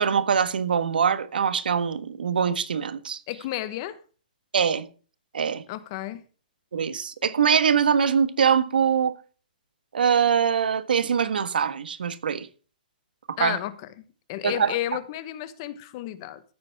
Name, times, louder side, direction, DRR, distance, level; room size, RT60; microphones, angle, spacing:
voice 1, 0.0-3.2 4.5-4.9 5.3-5.6 6.7-9.1 9.9-12.5 13.3-13.6 14.4-14.7, right 7 dB, 85° right, 1.5 m, -23 dB
voice 2, 3.3-4.0 5.7-6.2 13.4-16.4, left 14 dB, 30° left, 1.1 m, -32 dB
14.5 x 9.3 x 3.6 m
hypercardioid pair, 165°, 5 cm